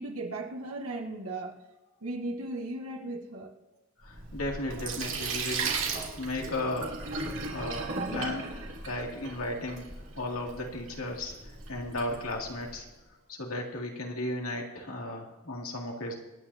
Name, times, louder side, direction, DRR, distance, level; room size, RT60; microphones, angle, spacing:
voice 1, 0.0-1.6 2.0-3.5, right 2 dB, 85° right, 2 dB, 1.8 m, -36 dB
voice 2, 4.0-5.8 6.2-7.0 7.5-8.5 8.9-9.9 10.2-11.3 11.7-12.9 13.3-16.1, left 1 dB, 85° left, -1 dB, 2.6 m, -35 dB
Sink (filling or washing), 4.0-12.8, right 4 dB, 60° right, 3.0 m, -37 dB
26.0 x 10.0 x 2.8 m, 1.1 s
head